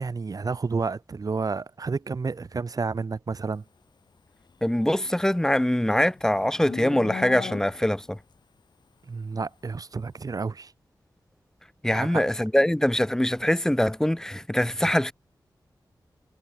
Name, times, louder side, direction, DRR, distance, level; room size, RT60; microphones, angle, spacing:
voice 1, 0.0-3.6 9.1-10.7 11.9-12.2, right 4 dB, 55° right, 7.1 m, -30 dB
voice 2, 4.6-8.2 11.8-15.1, left 1 dB, 5° left, 5.1 m, -23 dB
Livestock farm animals working animals, 4.8-8.1, left 5 dB, 75° left, 3.3 m, -38 dB
wide cardioid pair, 125°, 8 cm